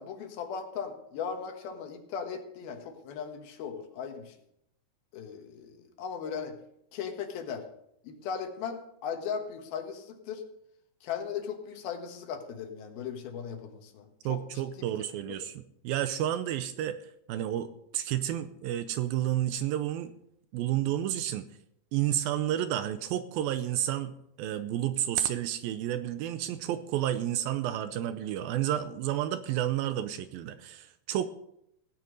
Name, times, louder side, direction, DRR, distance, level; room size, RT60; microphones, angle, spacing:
voice 1, 0.0-4.3 5.1-6.5 6.9-7.6 8.0-10.4 11.0-14.4 14.8-14.9, left 7 dB, 70° left, 5 dB, 3.1 m, -37 dB
voice 2, 14.3-17.0 17.3-20.1 20.5-21.5 21.9-31.3, right 12 dB, 80° right, 11 dB, 2.3 m, -31 dB
16.5 x 9.3 x 5.2 m, 0.77 s
omnidirectional pair, 4.5 m